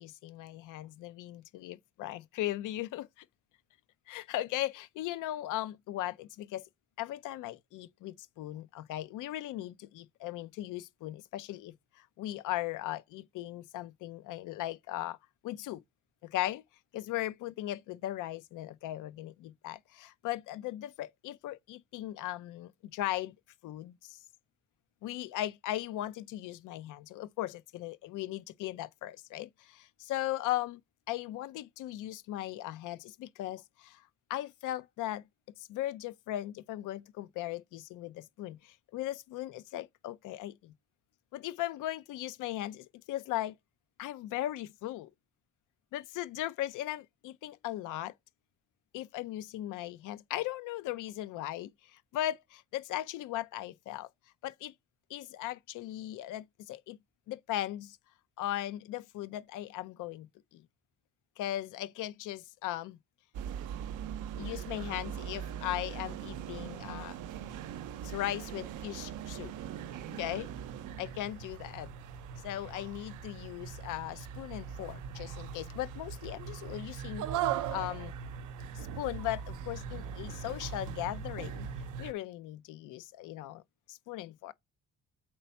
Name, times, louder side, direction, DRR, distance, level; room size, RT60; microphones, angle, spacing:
voice 1, 0.0-3.3 4.1-6.7 7.0-15.2 15.4-15.8 16.2-16.6 16.9-23.4 23.6-24.2 25.0-30.8 31.1-35.2 35.6-40.7 41.3-43.5 44.0-45.1 45.9-48.1 48.9-54.1 54.4-54.7 55.1-57.0 57.3-58.0 58.4-60.7 61.4-63.0 64.4-67.2 68.0-69.5 70.1-70.5 71.0-71.9 72.4-78.1 78.7-81.7 82.0-83.6 83.9-84.5, left 14 dB, 90° left, 0.6 m, -38 dB
sound 1, 63.3-82.1, right 8 dB, 90° right, 0.7 m, -40 dB
4.6 x 4.2 x 5.6 m
cardioid pair, 90°, 30 cm